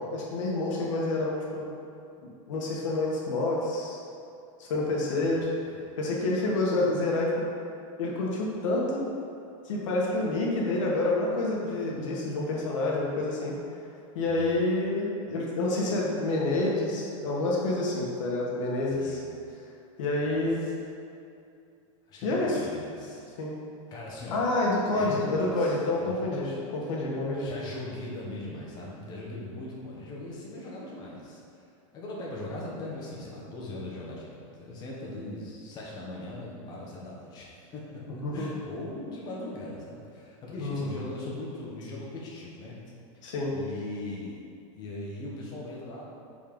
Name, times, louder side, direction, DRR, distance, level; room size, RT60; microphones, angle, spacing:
voice 1, 0.1-1.6 2.2-4.0 4.6-5.4 6.0-7.4 8.0-9.0 9.6-13.6 14.1-19.2 20.0-20.6 22.2-22.6 23.4-23.5 24.3-27.5 38.2-38.5 40.6-40.9 43.2-43.5, left 2 dB, 65° left, -3 dB, 1.5 m, -28 dB
voice 2, 5.3-5.7 14.2-14.7 18.9-19.3 20.2-20.9 22.1-23.3 23.9-24.4 24.9-26.6 27.3-31.6 31.9-38.1 38.3-42.8 43.5-44.4 44.7-46.0, left 2 dB, 25° left, -4 dB, 1.2 m, -40 dB
5.4 x 4.3 x 5.2 m, 2.5 s
supercardioid pair, 170°, 18 cm